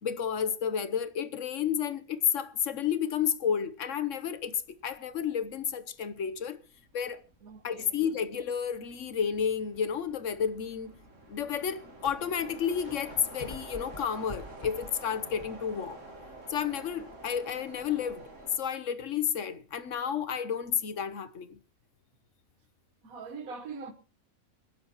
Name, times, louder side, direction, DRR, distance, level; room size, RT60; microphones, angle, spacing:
voice 1, 0.0-6.6 6.9-7.2 7.6-10.9 11.3-16.0 16.5-18.3 18.6-21.6, left 8 dB, 65° left, 1.2 m, -31 dB
sound 1, 3.6-3.8 4.2-18.6, right 2 dB, 60° right, 3.0 m, -49 dB
voice 2, 7.4-8.0 23.0-23.9, right 5 dB, 80° right, 1.6 m, -42 dB
sound 2, 9.5-9.7 10.4-10.5 11.4-11.5 11.7-15.7 16.0-16.1 19.7-19.8, left 2 dB, 35° left, 1.7 m, -47 dB
25.0 x 10.5 x 2.9 m
omnidirectional pair, 1.5 m